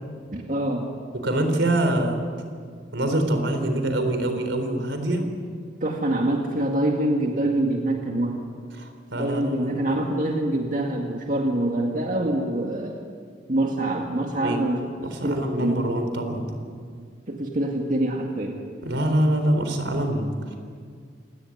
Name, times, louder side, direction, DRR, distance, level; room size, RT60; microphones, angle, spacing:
voice 1, 0.3-0.9 5.8-8.4 9.1-13.0 13.5-15.9 17.3-18.6, right 1 dB, 45° right, 1 dB, 2.1 m, -25 dB
voice 2, 1.2-2.2 2.9-5.3 8.8-9.7 14.3-14.6 15.0-16.5 18.8-20.6, right 1 dB, 75° right, 6 dB, 4.1 m, -25 dB
28.0 x 17.5 x 9.5 m, 2.1 s
head